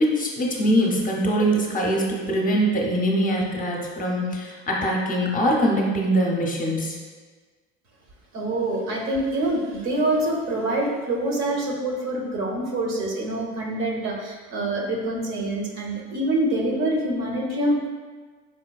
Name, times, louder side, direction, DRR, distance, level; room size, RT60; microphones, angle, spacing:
voice 1, 0.0-7.0, equal, 25° left, -1 dB, 0.6 m, -23 dB
voice 2, 8.3-17.9, right 1 dB, 60° right, -1 dB, 0.8 m, -25 dB
4.3 x 2.2 x 2.3 m, 1.5 s
supercardioid pair, 85°, 31 cm